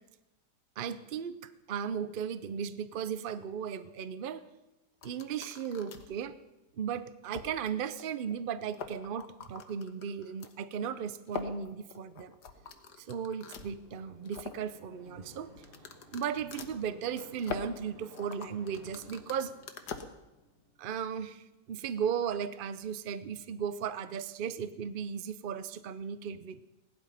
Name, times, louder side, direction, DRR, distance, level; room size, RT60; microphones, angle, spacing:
voice 1, 0.8-4.4 5.0-6.4 6.8-12.3 13.0-15.5 16.1-19.6 20.8-26.6, right 7 dB, 70° right, 14 dB, 0.5 m, -36 dB
sound 1, 5.0-6.2 6.7-6.8 7.2-7.7 8.0-8.1 8.3-8.4 8.7-10.5 11.3-13.7 14.1-14.6 15.6-20.0, left 6 dB, 70° left, 1.7 m, -43 dB
sound 2, 12.5-21.3, equal, 30° right, 2.9 m, -57 dB
17.0 x 11.5 x 5.7 m, 0.97 s
omnidirectional pair, 1.8 m